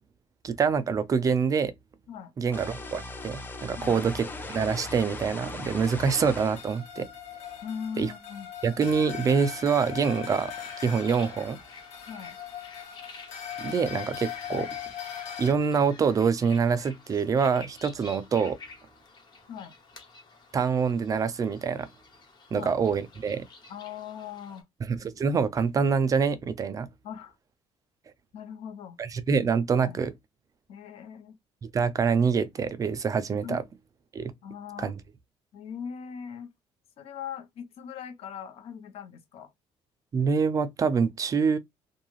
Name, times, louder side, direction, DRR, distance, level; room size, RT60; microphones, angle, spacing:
voice 1, 0.4-1.7 2.4-7.1 8.0-8.1 8.6-11.6 13.6-14.8 15.4-18.6 20.5-21.9 22.5-23.5 24.8-26.9 29.0-30.1 31.6-33.6 34.1-34.3 34.8-35.0 40.1-41.6, right 5 dB, 30° right, 0.4 m, -26 dB
sound 1, 2.5-6.7, left 2 dB, 20° left, 0.6 m, -38 dB
sound 2, 6.6-15.5, left 9 dB, 85° left, 1.3 m, -40 dB
voice 2, 7.6-8.5 12.1-12.4 19.5-19.7 22.5-22.8 23.7-24.6 27.0-27.4 28.3-29.0 29.8-30.0 30.7-31.4 33.4-33.6 34.4-34.9 35.5-36.5 37.0-39.5, left 7 dB, 65° left, 0.7 m, -40 dB
sound 3, 10.2-24.6, left 4 dB, 40° left, 1.1 m, -50 dB
2.5 x 2.3 x 3.1 m
cardioid pair, 130°, 11 cm